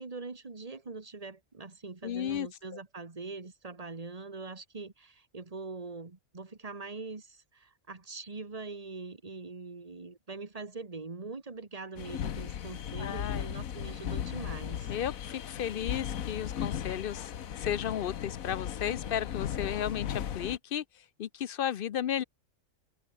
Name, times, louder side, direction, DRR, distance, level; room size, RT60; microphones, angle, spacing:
voice 1, 0.0-14.9, right 3 dB, 25° right, 1.8 m, -43 dB
voice 2, 2.0-2.5 13.0-13.4 14.9-20.8 21.2-22.2, left 10 dB, 55° left, 0.6 m, -34 dB
sound 1, 12.0-20.6, left 9 dB, 85° left, 1.4 m, -36 dB
open air
omnidirectional pair, 1.4 m